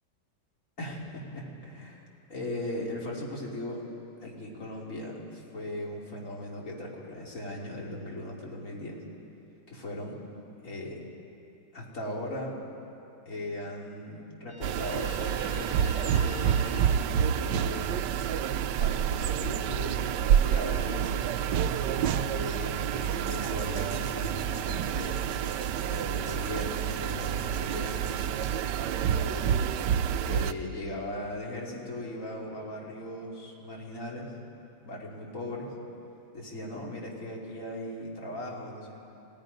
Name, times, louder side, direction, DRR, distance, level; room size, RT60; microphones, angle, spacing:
voice 1, 0.8-2.0 2.3-3.9 4.2-9.0 9.7-10.2 10.6-11.0 11.7-12.6 13.2-16.5 17.3-18.0 18.7-21.4 22.3-25.3 25.8-28.1 28.8-29.6 30.3-34.3 34.8-35.7 36.3-38.9, left 1 dB, 40° left, -3 dB, 3.3 m, -38 dB
Guitar, 14.5-18.1, left 2 dB, 60° left, 1.8 m, -48 dB
sound 1, 14.6-30.5, right 9 dB, 70° right, 1.2 m, -28 dB
sound 2, 23.3-29.0, right 4 dB, 40° right, 0.5 m, -49 dB
28.0 x 17.5 x 5.3 m, 2.8 s
omnidirectional pair, 2.1 m